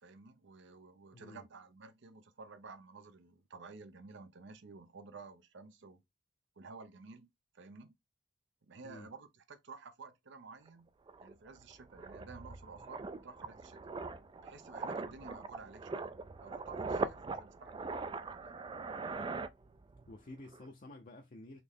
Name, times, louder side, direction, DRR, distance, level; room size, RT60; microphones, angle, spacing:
voice 1, 0.0-6.0 6.6-7.9 8.7-10.9 11.2-13.8 14.4-16.1 16.4-18.6, right 4 dB, 65° right, 0.6 m, -53 dB
voice 2, 1.1-1.4 8.8-9.1 20.1-21.6, left 1 dB, 45° left, 0.6 m, -51 dB
sound 1, 10.7-10.8 11.1-20.1 20.4-20.7, right 4 dB, 25° right, 0.3 m, -41 dB
4.0 x 3.1 x 3.5 m
head